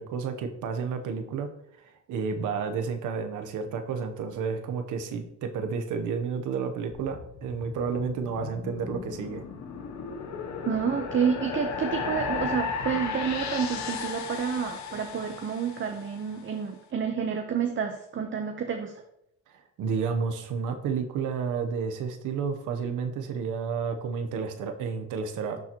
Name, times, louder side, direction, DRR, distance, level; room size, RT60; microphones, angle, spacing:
voice 1, 0.0-1.5 1.8-9.4 19.5-25.6, right 5 dB, 85° right, 7 dB, 0.9 m, -31 dB
sound 1, 6.9-16.3, left 5 dB, 65° left, 0.9 m, -35 dB
voice 2, 10.6-18.9, right 7 dB, 40° right, 4 dB, 0.8 m, -29 dB
12.0 x 4.0 x 3.0 m, 0.75 s
cardioid pair, 90°, 30 cm